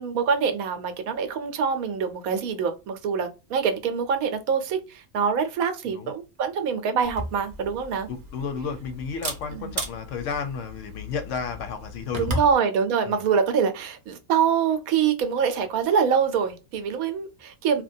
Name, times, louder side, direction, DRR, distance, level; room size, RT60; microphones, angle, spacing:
voice 1, 0.0-8.1 9.5-9.7 12.2-17.8, right 6 dB, 80° right, 1.0 m, -25 dB
Camera, 7.0-12.5, right 1 dB, 45° right, 0.7 m, -36 dB
voice 2, 8.1-12.4 13.0-13.2, left 6 dB, 70° left, 0.8 m, -32 dB
2.8 x 2.2 x 2.5 m
omnidirectional pair, 1.5 m